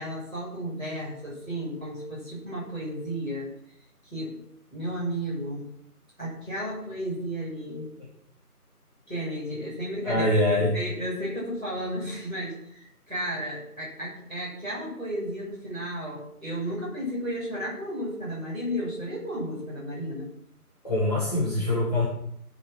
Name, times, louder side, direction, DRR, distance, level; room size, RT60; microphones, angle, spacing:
voice 1, 0.0-3.5 4.0-4.4 4.7-5.7 6.2-7.9 9.1-20.3, equal, 5° left, -18 dB, 4.6 m, -33 dB
voice 2, 10.0-10.7 20.8-22.0, left 1 dB, 25° left, -8 dB, 2.8 m, -24 dB
13.0 x 6.7 x 6.3 m, 0.75 s
figure-of-eight pair, 175°, 46 cm